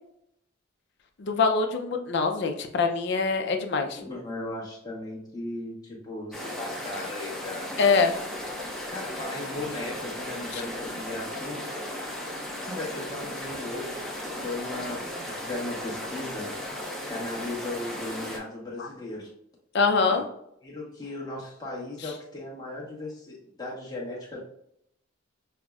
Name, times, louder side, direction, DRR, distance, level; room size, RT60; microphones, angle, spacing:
voice 1, 1.2-4.0 7.8-8.1 10.5-10.6 18.8-18.9 19.7-20.3, left 4 dB, 55° left, 5 dB, 0.4 m, -24 dB
voice 2, 4.0-7.7 8.9-11.8 12.6-14.1 14.4-16.5 17.1-19.4 20.1-20.2 20.6-24.4, left 2 dB, 20° left, -5 dB, 0.9 m, -37 dB
sound 1, 6.3-18.4, left 1 dB, ahead, 0.5 m, -36 dB
5.6 x 2.0 x 2.3 m, 0.75 s
head